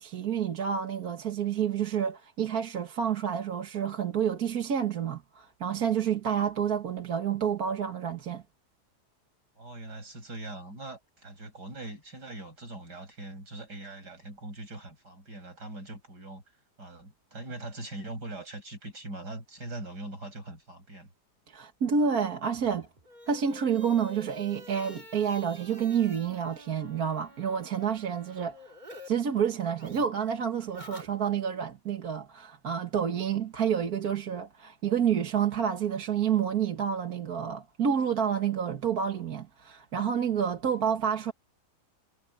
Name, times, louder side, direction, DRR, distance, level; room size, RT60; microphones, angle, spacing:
voice 1, 0.0-8.4 21.5-22.9 23.3-28.6 29.0-41.3, right 7 dB, 65° right, 2.0 m, -29 dB
voice 2, 9.6-16.4 16.8-21.1, right 2 dB, 80° right, 8.0 m, -42 dB
sound 1, 22.5-29.1 29.4-31.6, left 1 dB, 25° right, 2.3 m, -50 dB
omnidirectional pair, 1.8 m